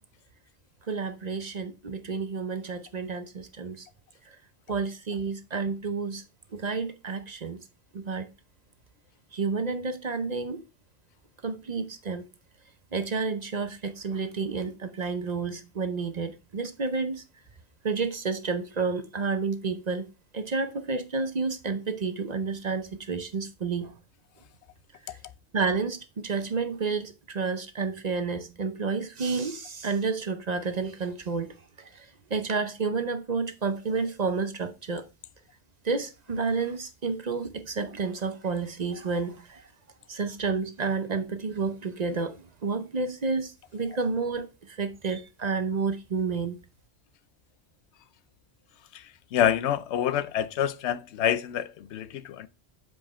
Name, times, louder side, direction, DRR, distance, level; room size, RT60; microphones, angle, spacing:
voice 1, 0.9-3.9 4.7-6.2 6.5-7.6 7.9-8.3 9.3-10.6 11.4-12.2 12.9-17.2 17.8-20.1 20.3-23.9 25.1-25.2 25.5-32.1 32.3-35.0 35.8-39.6 40.1-42.4 42.6-46.6, right 4 dB, 45° right, 0.7 m, -30 dB
voice 2, 49.3-52.5, left 10 dB, 90° left, 0.9 m, -27 dB
7.3 x 4.9 x 4.2 m
omnidirectional pair, 1.1 m